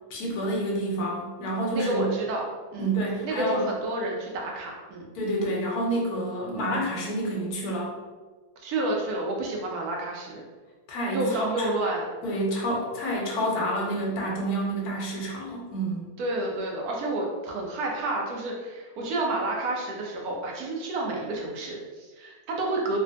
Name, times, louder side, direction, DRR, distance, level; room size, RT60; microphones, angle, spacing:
voice 1, 0.1-2.1 2.8-3.6 5.1-7.9 10.9-11.7 12.2-16.1, right 1 dB, 75° left, -2 dB, 1.2 m, -28 dB
voice 2, 1.7-2.4 2.7-2.9 3.2-5.1 8.6-10.4 11.1-12.1 16.2-23.0, right 2 dB, 75° right, -1 dB, 1.1 m, -30 dB
3.3 x 2.3 x 2.5 m, 1.3 s
omnidirectional pair, 1.7 m